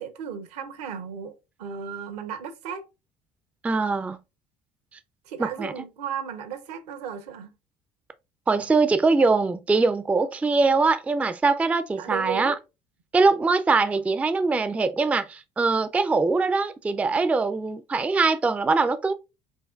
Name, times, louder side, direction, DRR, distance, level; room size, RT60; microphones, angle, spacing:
voice 1, 0.0-2.9 5.3-7.5 12.0-12.6, right 7 dB, 70° right, 0.7 m, -35 dB
voice 2, 3.6-4.2 5.4-5.7 8.5-12.5 13.1-19.1, right 3 dB, 5° right, 0.3 m, -22 dB
5.7 x 2.4 x 2.3 m
figure-of-eight pair, 60°, 21 cm